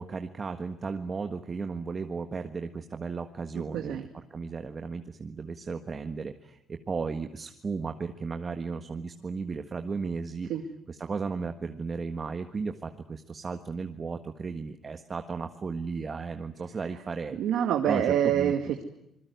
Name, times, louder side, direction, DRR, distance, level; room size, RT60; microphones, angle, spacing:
voice 1, 0.0-4.0 4.3-10.5 10.9-17.4 17.8-18.5, right 4 dB, 40° right, 7 dB, 1.6 m, -35 dB
voice 2, 3.5-4.1 10.5-10.6 17.4-18.8, right 10 dB, 85° right, 5 dB, 2.1 m, -26 dB
26.5 x 21.0 x 9.5 m, 0.81 s
cardioid pair, 90°, 0 cm